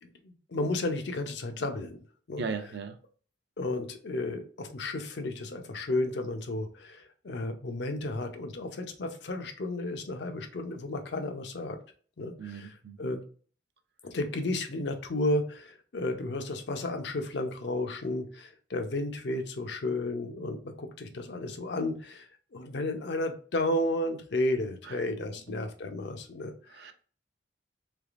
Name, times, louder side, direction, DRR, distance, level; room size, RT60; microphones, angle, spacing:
voice 1, 0.0-2.0 2.3-2.4 3.6-11.8 12.2-13.2 14.0-26.5, left 2 dB, 65° left, 0.6 m, -33 dB
voice 2, 2.4-3.0 12.4-13.0 24.8-25.0 25.5-25.6 26.7-26.9, right 5 dB, 65° right, 0.5 m, -37 dB
3.4 x 3.2 x 2.4 m
head